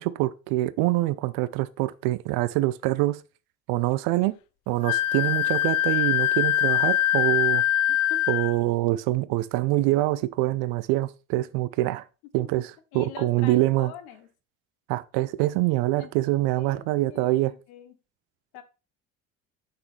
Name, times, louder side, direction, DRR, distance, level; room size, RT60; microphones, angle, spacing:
voice 1, 0.0-3.2 3.7-4.4 4.7-7.6 8.3-12.0 12.3-13.9 14.9-17.5, right 17 dB, 60° right, 0.6 m, -25 dB
Wind instrument woodwind instrument, 4.8-8.6, left 12 dB, 50° left, 0.4 m, -23 dB
voice 2, 7.9-8.2 12.4-12.5 12.9-14.3 15.9-16.1 16.5-18.0 18.5-18.6, left 10 dB, 65° left, 1.0 m, -44 dB
5.8 x 5.8 x 3.2 m
hypercardioid pair, 60°, 41 cm